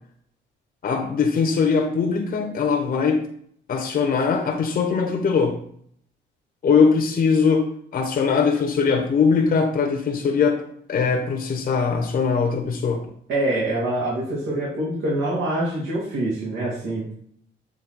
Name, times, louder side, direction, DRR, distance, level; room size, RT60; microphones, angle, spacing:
voice 1, 0.8-3.2 3.7-5.6 6.6-10.6 10.9-13.0, left 5 dB, 50° left, 3 dB, 0.9 m, -21 dB
voice 2, 13.3-17.1, right 1 dB, 75° right, -6 dB, 2.1 m, -25 dB
7.3 x 3.0 x 4.5 m, 0.64 s
cardioid pair, 90°, 20 cm